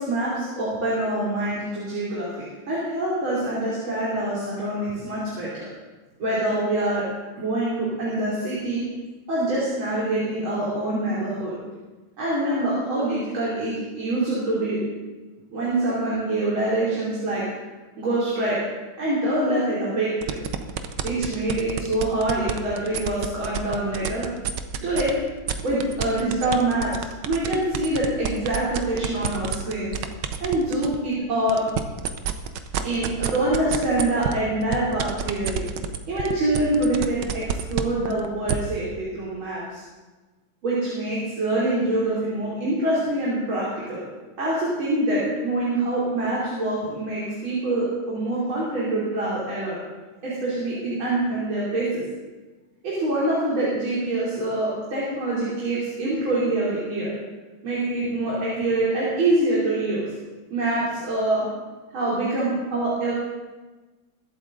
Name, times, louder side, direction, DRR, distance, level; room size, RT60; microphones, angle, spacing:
voice 1, 0.0-5.7 6.2-7.0 7.4-8.9 9.3-11.5 12.2-14.8 15.5-17.4 18.0-18.6 19.0-20.4 21.0-24.3 24.8-25.1 25.6-29.9 30.4-31.6 32.8-35.7 36.1-39.8 40.6-44.0 44.4-49.8 50.2-52.0 52.8-57.1 57.6-60.0 60.5-61.5 61.9-63.1, right 1 dB, 85° right, -8 dB, 4.0 m, -25 dB
sound 1, 20.2-25.1 25.5-31.0 31.4-38.5, right 9 dB, 65° right, 1.3 m, -28 dB
22.5 x 8.1 x 3.8 m, 1.2 s
omnidirectional pair, 2.2 m